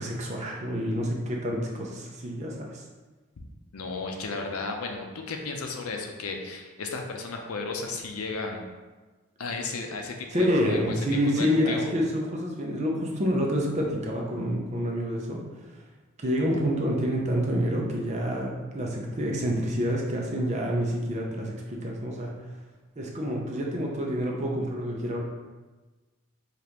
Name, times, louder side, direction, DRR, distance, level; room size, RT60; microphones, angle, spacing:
voice 1, 0.0-2.8 10.3-15.4 16.2-22.3 23.0-25.2, equal, 30° right, -1 dB, 0.6 m, -28 dB
voice 2, 3.7-8.7 9.4-11.1 11.4-11.9, left 3 dB, 90° left, 3 dB, 0.6 m, -34 dB
5.1 x 2.5 x 2.9 m, 1.3 s
head